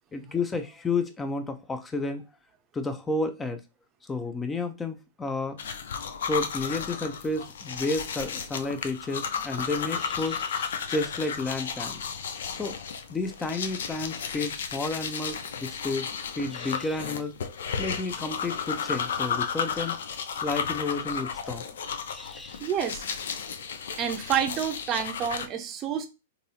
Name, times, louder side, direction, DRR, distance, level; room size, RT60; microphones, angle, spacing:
voice 1, 0.1-2.2 2.7-3.6 4.0-5.6 6.2-12.0 12.5-12.8 13.1-16.1 16.3-17.3 17.8-20.0 20.4-21.6 22.1-22.6, left 3 dB, 15° left, 0.5 m, -31 dB
sound 1, 5.6-25.5, left 6 dB, 70° left, 0.5 m, -33 dB
voice 2, 22.6-23.0 24.0-26.1, right 8 dB, 35° right, 0.6 m, -28 dB
3.9 x 2.7 x 2.8 m
hypercardioid pair, 105°, 0 cm